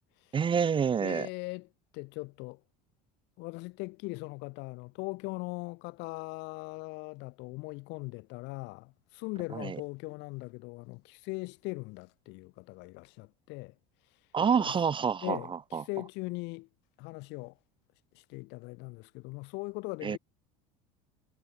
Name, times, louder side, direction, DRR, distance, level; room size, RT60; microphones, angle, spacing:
voice 1, 0.3-1.3 9.5-9.8 14.3-15.4 15.7-15.8 20.0-20.2, right 7 dB, 25° right, 0.7 m, -27 dB
voice 2, 1.0-2.6 3.4-13.8 14.1-14.2 14.6-14.8 15.2-16.7 17.0-17.6 18.1-20.2, left 25 dB, 70° left, 5.1 m, -40 dB
supercardioid pair, 90°, 19 cm